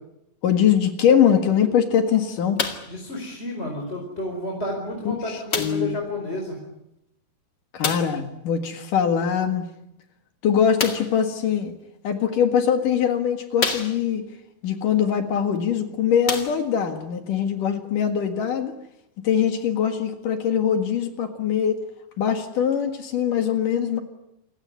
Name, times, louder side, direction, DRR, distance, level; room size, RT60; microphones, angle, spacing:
voice 1, 0.4-2.6 5.3-6.0 7.7-9.6 10.4-11.7 12.0-14.3 14.6-18.7 19.2-21.8 22.2-24.0, left 8 dB, 65° left, 7 dB, 3.2 m, -22 dB
sound 1, 2.6-3.0 3.9-4.0 5.5-5.9 7.8-8.2 10.8-11.2 12.2-12.3 12.9-13.0 13.6-14.3 15.6-15.7 16.2-16.9 17.7-17.8, left 5 dB, 35° left, 2.1 m, -28 dB
voice 2, 2.9-6.6, left 1 dB, 15° left, 0 dB, 4.4 m, -31 dB
28.5 x 16.5 x 9.8 m, 0.83 s
omnidirectional pair, 4.3 m